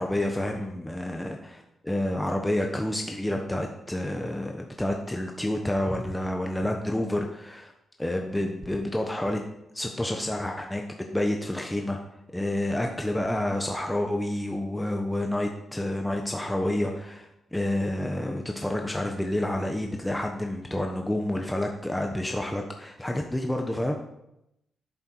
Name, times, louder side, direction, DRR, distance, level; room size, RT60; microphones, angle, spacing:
voice 1, 0.0-7.7 8.0-9.4 9.7-10.8 11.1-12.0 12.3-24.1, left 1 dB, 10° left, 2 dB, 1.1 m, -29 dB
10.5 x 8.9 x 4.6 m, 0.84 s
cardioid pair, 100°, 0 cm